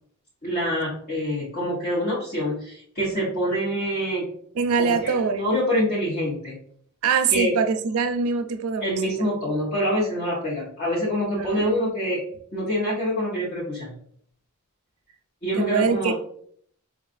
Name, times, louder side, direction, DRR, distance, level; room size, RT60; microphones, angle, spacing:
voice 1, 0.4-4.3 4.8-6.6 7.3-7.5 8.8-12.2 12.5-13.9 15.4-16.1, equal, 45° left, -7 dB, 1.0 m, -26 dB
voice 2, 4.6-5.6 7.0-9.0 11.3-11.6 15.6-16.1, right 5 dB, 75° right, 7 dB, 0.4 m, -23 dB
4.8 x 2.4 x 2.5 m, 0.62 s
head